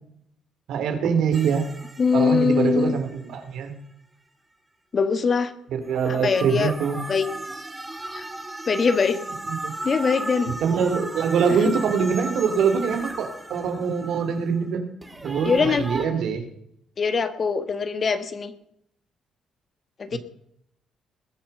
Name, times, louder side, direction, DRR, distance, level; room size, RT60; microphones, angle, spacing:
voice 1, 0.7-1.7 2.1-3.7 5.7-7.0 9.6-9.8 10.6-14.8 15.2-16.4 20.1-20.2, right 6 dB, 75° right, 7 dB, 2.8 m, -24 dB
sound 1, 1.3-3.6 5.8-14.6 15.0-16.1, right 2 dB, 10° right, 1.7 m, -36 dB
voice 2, 2.0-2.9 4.9-5.5 6.1-6.7 7.1-7.3 8.1-8.2 8.7-9.2 9.8-10.6 11.5-11.7 15.4-15.8 17.0-18.5 20.0-20.2, left 5 dB, 35° left, 11 dB, 1.5 m, -22 dB
21.0 x 7.8 x 5.5 m, 0.73 s
cardioid pair, 125°, 0 cm